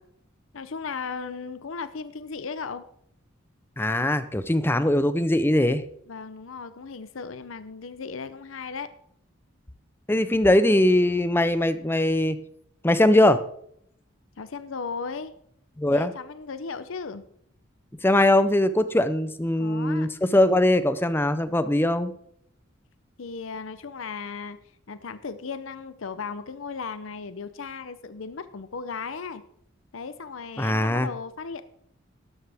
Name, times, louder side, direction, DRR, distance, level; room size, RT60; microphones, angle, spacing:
voice 1, 0.5-2.8 6.1-8.9 14.4-15.3 15.9-17.3 19.6-20.1 23.2-24.6 24.9-29.4 29.9-31.6, left 5 dB, 85° left, 13 dB, 0.7 m, -36 dB
voice 2, 3.8-5.8 10.1-12.4 12.8-13.4 15.8-16.1 18.0-22.1 30.6-31.1, left 1 dB, 10° left, 12 dB, 0.5 m, -21 dB
13.0 x 11.5 x 3.5 m, 0.70 s
head